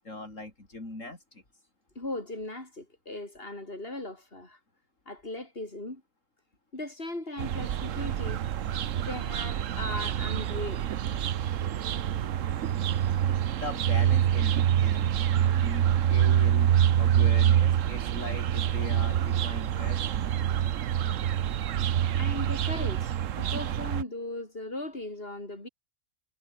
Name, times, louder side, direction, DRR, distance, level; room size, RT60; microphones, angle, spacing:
voice 1, 0.0-1.4 13.2-20.3, left 2 dB, 65° left, 5.6 m, -40 dB
voice 2, 1.9-4.6 5.1-6.0 6.7-8.4 9.0-10.9 22.1-25.7, left 2 dB, 45° left, 6.3 m, -38 dB
sound 1, 7.4-24.0, right 10 dB, 70° right, 1.2 m, -26 dB
omnidirectional pair, 1.4 m